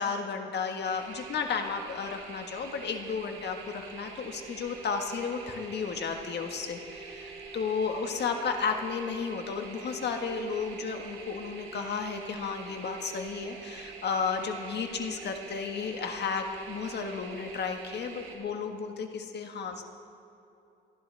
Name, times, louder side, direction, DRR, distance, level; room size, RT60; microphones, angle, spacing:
voice 1, 0.0-19.8, left 5 dB, 60° left, 4 dB, 1.6 m, -33 dB
sound 1, 0.8-18.4, right 5 dB, 85° right, 3.2 m, -45 dB
28.5 x 11.0 x 3.5 m, 2.8 s
cardioid pair, 90°, 20 cm